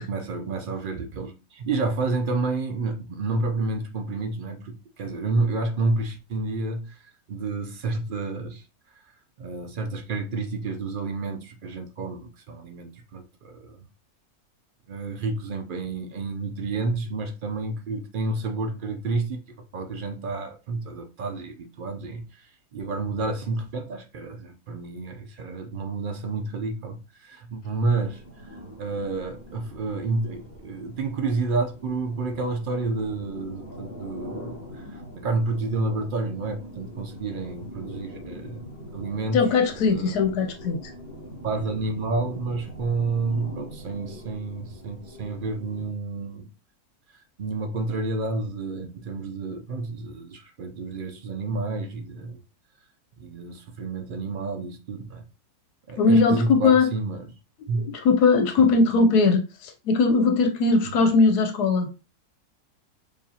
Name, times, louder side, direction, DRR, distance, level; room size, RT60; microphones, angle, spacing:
voice 1, 0.0-8.7 8.9-9.0 9.4-13.9 14.9-19.4 19.7-28.5 28.8-38.6 38.9-40.2 41.4-46.5 47.4-52.4 53.2-55.2 55.9-57.3 57.7-57.9 58.6-58.7 60.8-61.0, right 3 dB, 80° right, 0.4 m, -30 dB
sound 1, 28.0-45.9, equal, 35° left, 3.1 m, -43 dB
voice 2, 39.3-40.9 56.0-56.9 57.9-61.9, left 4 dB, 85° left, 1.2 m, -20 dB
6.9 x 2.6 x 2.8 m
omnidirectional pair, 1.6 m